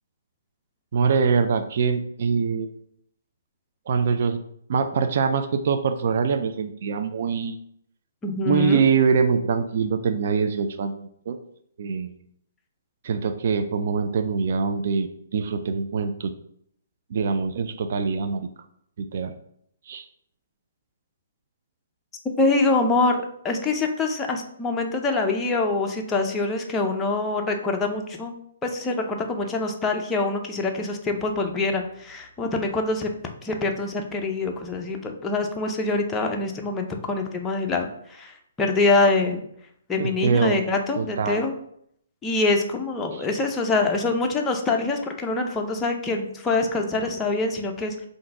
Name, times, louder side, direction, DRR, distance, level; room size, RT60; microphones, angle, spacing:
voice 1, 0.9-2.7 3.9-4.4 4.7-7.6 8.4-11.4 11.8-12.1 13.0-16.3 17.1-18.5 19.0-19.3 19.9-20.1 40.0-40.6 41.0-41.4 43.1-43.3, right 5 dB, 55° right, 8 dB, 0.4 m, -24 dB
voice 2, 8.2-8.9 22.4-28.3 28.6-33.1 33.4-39.4 39.9-41.5 42.2-48.1, left 3 dB, 10° left, 2 dB, 0.5 m, -25 dB
3.8 x 2.6 x 4.6 m, 0.69 s
hypercardioid pair, 145°, 0 cm